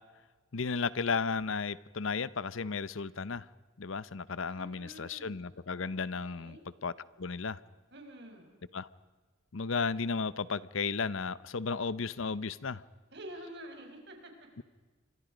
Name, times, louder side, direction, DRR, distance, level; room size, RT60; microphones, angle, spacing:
voice 1, 0.5-3.4 3.8-6.9 7.2-7.6 8.7-8.9 9.5-12.8, left 5 dB, 70° left, 0.7 m, -34 dB
voice 2, 4.4-5.4 5.8-6.7 7.9-8.6 13.1-14.3, right 1 dB, 55° right, 5.2 m, -48 dB
29.0 x 25.0 x 5.1 m
head